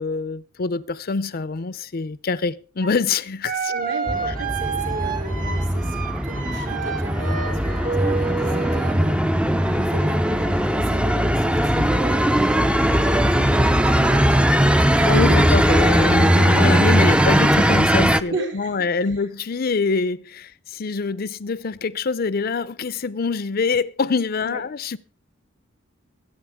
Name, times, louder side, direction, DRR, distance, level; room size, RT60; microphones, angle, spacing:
voice 1, 0.0-3.7 15.0-25.0, left 4 dB, 50° left, 0.6 m, -25 dB
sound 1, 2.8-2.9 3.4-9.1 9.8-10.7, right 5 dB, 45° right, 1.3 m, -30 dB
voice 2, 3.7-14.7 14.9-15.7 18.2-18.8 24.4-24.6, right 2 dB, 65° right, 3.2 m, -35 dB
sound 2, 4.1-18.2, equal, 5° right, 0.5 m, -19 dB
23.0 x 8.6 x 3.6 m
head